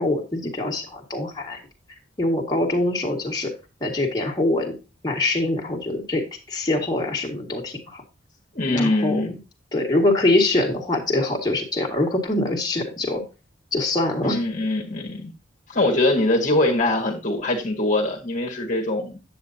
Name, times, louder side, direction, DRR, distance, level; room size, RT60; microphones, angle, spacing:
voice 1, 0.0-1.6 2.2-3.5 3.8-4.7 5.0-8.0 8.7-9.4 9.7-13.2 13.7-14.4, left 2 dB, 20° left, -1 dB, 1.9 m, -24 dB
voice 2, 8.5-9.3 14.2-15.3 15.7-19.2, left 2 dB, 40° left, 0 dB, 1.6 m, -22 dB
9.4 x 7.8 x 2.8 m, 0.29 s
head